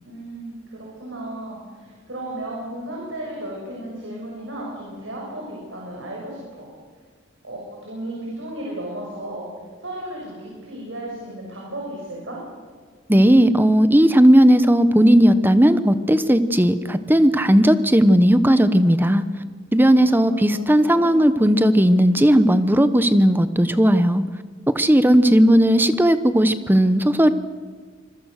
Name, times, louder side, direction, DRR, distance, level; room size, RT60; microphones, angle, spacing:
voice 1, 0.0-6.7 7.4-9.4 9.8-12.4 19.9-20.5 20.8-21.1, right 1 dB, 70° right, -3 dB, 6.5 m, -34 dB
voice 2, 13.1-19.2 19.7-24.2 24.7-27.3, equal, 10° right, 12 dB, 0.9 m, -16 dB
26.0 x 21.5 x 6.5 m, 1.6 s
head